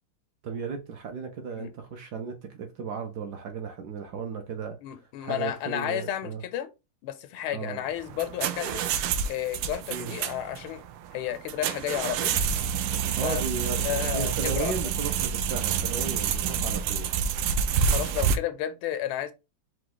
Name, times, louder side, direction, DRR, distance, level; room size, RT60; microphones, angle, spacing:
voice 1, 0.4-4.8 5.2-6.4 7.5-7.8 9.9-10.1 13.2-17.1, right 5 dB, 65° right, 1.1 m, -35 dB
voice 2, 4.8-6.7 7.0-8.9 9.3-10.8 11.1-12.4 13.2-13.4 13.7-14.7 16.4-16.7 17.9-19.3, left 11 dB, 90° left, 1.5 m, -32 dB
sound 1, 7.9-18.4, right 7 dB, 85° right, 1.4 m, -28 dB
4.9 x 2.3 x 3.8 m
omnidirectional pair, 2.3 m